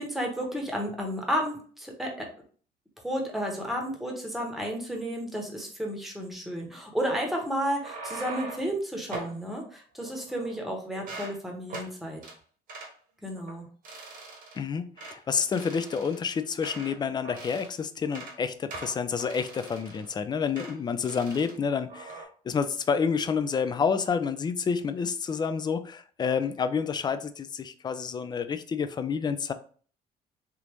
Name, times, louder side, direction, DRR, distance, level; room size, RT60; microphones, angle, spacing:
voice 1, 0.0-2.3 3.0-12.2 13.2-13.6, equal, ahead, 1.0 m, -32 dB
sound 1, 7.6-8.7 9.1-9.4 10.0-10.7 10.9-11.4 11.7-11.9 12.2-12.4 12.7-12.9 13.4-13.6 13.8-14.6 15.0-15.2 15.5-17.0 17.2-17.7 18.0-18.4 18.7-20.1 20.5-20.8 21.0-21.5 21.9-22.2, right 3 dB, 55° right, 1.1 m, -42 dB
voice 2, 14.5-29.5, left 6 dB, 25° left, 0.3 m, -29 dB
3.4 x 2.5 x 3.0 m
cardioid pair, 110°, 17 cm